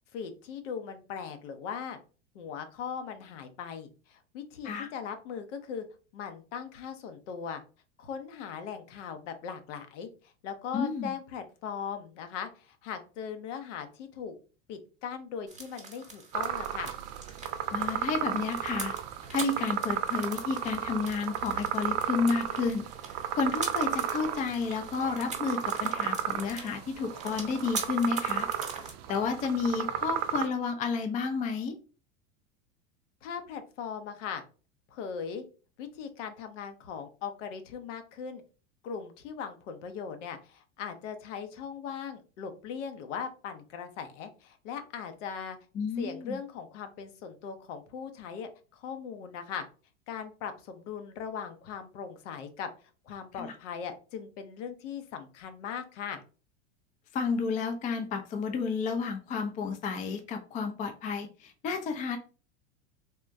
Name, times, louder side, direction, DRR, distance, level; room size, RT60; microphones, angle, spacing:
voice 1, 0.0-2.0 2.3-5.9 6.1-7.6 8.0-14.3 14.7-16.9 33.2-34.4 34.9-35.4 35.8-38.4 38.8-45.6 46.0-49.6 50.1-52.7 53.0-56.2, left 7 dB, 70° left, 8 dB, 0.7 m, -39 dB
voice 2, 10.7-11.1 17.7-18.9 19.3-28.5 29.1-31.8 45.7-46.4 53.4-53.5 57.1-62.2, left 5 dB, 20° left, 6 dB, 0.4 m, -31 dB
sound 1, 15.5-28.9, right 3 dB, 20° right, 1.0 m, -44 dB
sound 2, 16.3-30.5, right 10 dB, 55° right, 0.4 m, -33 dB
3.6 x 2.1 x 2.6 m, 0.35 s
hypercardioid pair, 100°, 37 cm